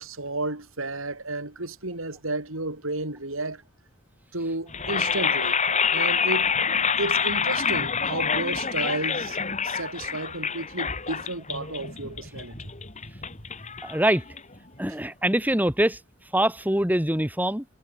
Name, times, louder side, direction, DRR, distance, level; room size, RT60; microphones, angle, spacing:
voice 1, 0.0-3.6 4.3-5.6 5.9-6.6 7.0-9.4 9.6-12.7, right 2 dB, 80° right, 7.2 m, -32 dB
sound 1, 4.7-14.8, left 6 dB, 35° left, 4.3 m, -27 dB
voice 2, 13.8-14.2 14.8-16.0 16.3-17.6, right 1 dB, 10° right, 3.1 m, -23 dB
head